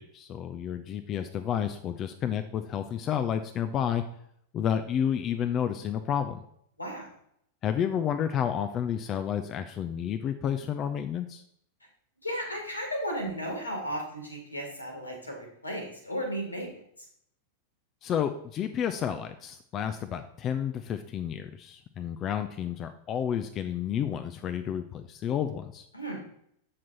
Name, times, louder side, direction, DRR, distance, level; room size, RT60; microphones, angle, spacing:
voice 1, 0.0-4.0 4.5-6.4 7.6-11.4 18.0-25.9, left 9 dB, 30° left, 8 dB, 0.5 m, -30 dB
voice 2, 6.8-7.1 12.2-16.7 25.9-26.2, equal, 85° left, 2 dB, 2.2 m, -34 dB
7.5 x 6.0 x 3.9 m, 0.69 s
figure-of-eight pair, 90°, 0 cm